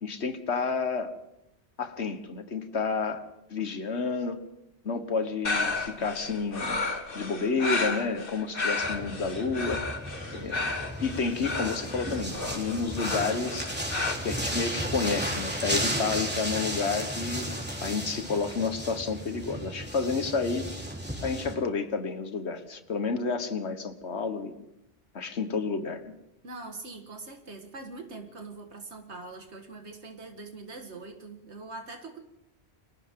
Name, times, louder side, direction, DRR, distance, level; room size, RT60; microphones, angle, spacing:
voice 1, 0.0-1.1 1.8-4.4 4.8-6.9 7.1-9.9 10.3-10.7 11.0-13.7 14.2-20.7 21.2-24.6 25.1-26.1, left 4 dB, 85° left, 9 dB, 1.6 m, -30 dB
sound 1, 5.4-14.1, left 3 dB, 55° left, 2.0 m, -32 dB
sound 2, 8.8-21.5, right 1 dB, 10° right, 3.6 m, -34 dB
voice 2, 26.4-32.2, right 3 dB, 85° right, 4 dB, 2.1 m, -43 dB
29.5 x 23.5 x 3.8 m, 0.82 s
omnidirectional pair, 1.1 m